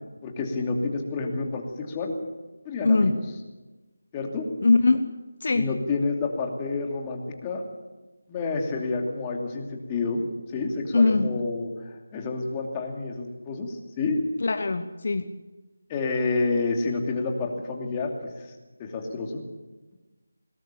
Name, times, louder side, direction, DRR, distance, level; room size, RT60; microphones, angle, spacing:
voice 1, 0.2-2.1 2.6-3.1 4.1-4.4 5.5-7.6 8.3-10.2 10.5-14.2 15.9-19.4, left 3 dB, 15° left, 1 dB, 2.8 m, -29 dB
voice 2, 2.8-3.2 4.6-5.0 5.4-5.7 10.9-11.3 14.4-15.3, left 3 dB, 50° left, 9 dB, 1.0 m, -21 dB
21.0 x 19.5 x 7.0 m, 1.2 s
figure-of-eight pair, 165°, 0 cm